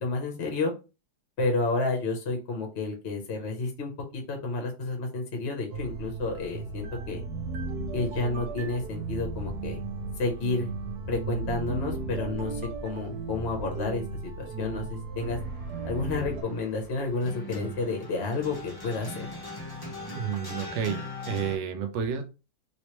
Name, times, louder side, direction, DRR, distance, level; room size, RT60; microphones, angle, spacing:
voice 1, 0.0-0.7 1.4-7.2 7.9-9.8 10.2-10.7 11.1-15.4 15.8-19.3, left 3 dB, 50° left, 2 dB, 0.9 m, -30 dB
sound 1, 5.7-16.4, right 3 dB, 75° right, 1.2 m, -35 dB
sound 2, 15.2-21.6, left 1 dB, 20° left, 0.6 m, -41 dB
voice 2, 20.1-22.2, right 7 dB, 60° right, 5 dB, 0.8 m, -31 dB
3.2 x 3.1 x 3.0 m, 0.30 s
omnidirectional pair, 1.8 m